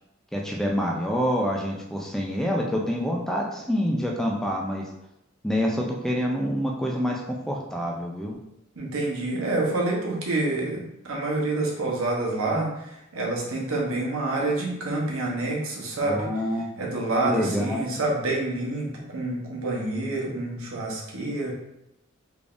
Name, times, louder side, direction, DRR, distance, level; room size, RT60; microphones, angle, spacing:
voice 1, 0.3-4.9 5.4-8.4 16.0-16.8 17.2-17.9, equal, ahead, -1 dB, 0.3 m, -27 dB
voice 2, 8.8-16.3 16.8-21.5, right 2 dB, 85° right, -3 dB, 1.0 m, -27 dB
3.6 x 3.4 x 2.5 m, 0.86 s
head